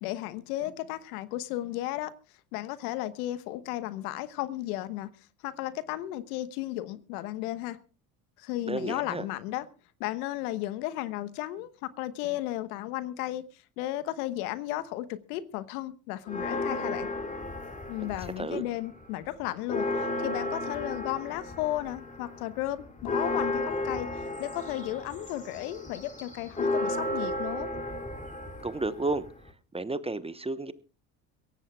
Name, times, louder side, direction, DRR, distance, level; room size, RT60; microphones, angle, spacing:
voice 1, 0.0-2.1 2.5-5.1 5.4-7.8 8.4-9.7 10.0-13.4 13.8-17.1 17.9-19.9 20.2-24.1 24.4-27.7, left 15 dB, 80° left, 1.2 m, -34 dB
voice 2, 8.7-9.3 18.0-18.6 28.6-29.3 29.7-30.7, right 2 dB, 15° right, 0.9 m, -32 dB
sound 1, 16.3-18.6 19.0-29.5, left 2 dB, 15° left, 2.6 m, -34 dB
23.0 x 17.0 x 2.3 m
hypercardioid pair, 70°, 44 cm